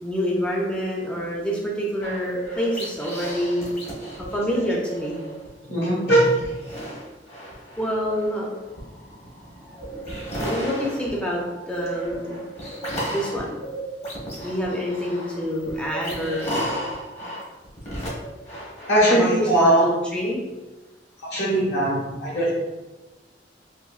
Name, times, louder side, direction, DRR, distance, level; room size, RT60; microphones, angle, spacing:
voice 1, 0.0-3.7 4.3-5.2 7.8-8.5 10.4-12.4 13.1-13.6 14.4-16.5 19.1-19.3 19.6-20.4, equal, 5° left, -3 dB, 0.4 m, -27 dB
sound 1, 2.0-5.5 5.9-19.6, right 1 dB, 40° left, 0.9 m, -34 dB
voice 2, 5.7-6.3 18.9-19.9 21.2-22.5, right 1 dB, 75° left, -5 dB, 1.3 m, -19 dB
3.9 x 2.6 x 2.3 m, 1.1 s
head